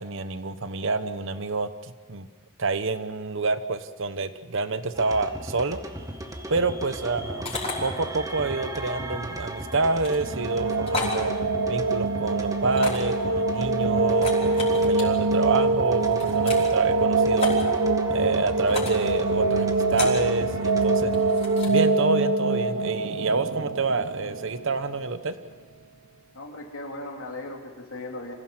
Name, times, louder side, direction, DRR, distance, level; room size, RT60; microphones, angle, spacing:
voice 1, 0.0-2.3 2.6-5.8 6.5-7.5 7.8-11.3 11.7-17.5 18.1-21.1 21.7-25.3, right 3 dB, 65° right, 11 dB, 1.1 m, -27 dB
sound 1, 4.9-21.6, right 1 dB, 15° right, 1.8 m, -37 dB
sound 2, 7.4-7.7 9.9-10.2 10.9-11.2 12.7-13.1 14.1-15.0 16.0-16.7 17.4-17.6 18.7-19.0 19.9-20.2 21.1-21.8, left 3 dB, 30° left, 5.1 m, -32 dB
sound 3, 10.1-25.0, right 3 dB, 90° right, 1.0 m, -24 dB
voice 2, 26.3-28.3, left 2 dB, 85° left, 1 dB, 3.3 m, -37 dB
26.0 x 16.5 x 7.9 m, 1.4 s
head